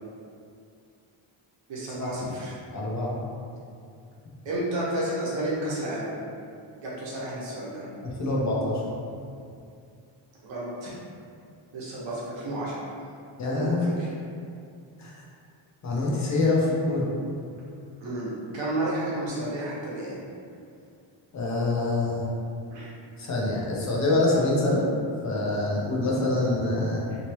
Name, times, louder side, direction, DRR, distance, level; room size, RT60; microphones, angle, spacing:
voice 1, 1.7-2.5 4.4-6.1 6.8-7.9 10.4-10.9 11.7-12.9 13.5-14.1 18.0-20.2 22.7-22.9 27.1-27.2, right 1 dB, 65° right, -7 dB, 1.0 m, -31 dB
voice 2, 2.7-3.2 8.0-8.8 13.4-13.9 15.0-15.1 15.8-17.1 21.3-22.3 23.2-24.8 25.2-27.0, left 2 dB, 35° left, -4 dB, 0.6 m, -25 dB
3.0 x 2.8 x 3.0 m, 2.4 s
wide cardioid pair, 180°, 49 cm